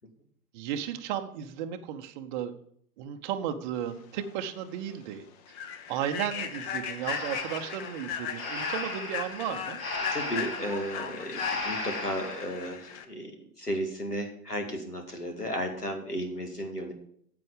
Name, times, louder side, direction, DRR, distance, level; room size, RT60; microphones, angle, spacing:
voice 1, 0.5-2.5 3.0-5.3 5.9-9.8, right 9 dB, 30° right, 6 dB, 0.8 m, -34 dB
Human voice / Train, 4.2-4.3 4.8-4.9 5.5-13.0, left 8 dB, 25° left, 0.8 m, -37 dB
Breathing, 7.0-12.5, left 2 dB, 60° left, 4.0 m, -36 dB
voice 2, 10.1-16.9, equal, 90° left, 4 dB, 2.2 m, -34 dB
9.5 x 7.7 x 5.1 m, 0.65 s
figure-of-eight pair, 105°, 45 cm